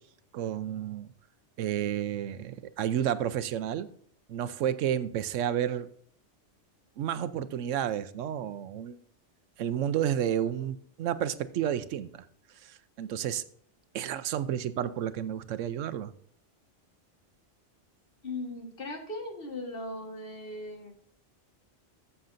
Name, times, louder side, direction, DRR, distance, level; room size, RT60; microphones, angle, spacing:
voice 1, 0.3-1.1 1.6-3.9 4.3-5.9 7.0-9.0 9.6-12.2 12.6-13.4 13.9-16.1, right 10 dB, 85° right, 14 dB, 1.0 m, -31 dB
voice 2, 18.2-20.9, left 2 dB, 50° left, 4 dB, 1.7 m, -38 dB
13.0 x 6.8 x 2.6 m, 0.63 s
omnidirectional pair, 1.2 m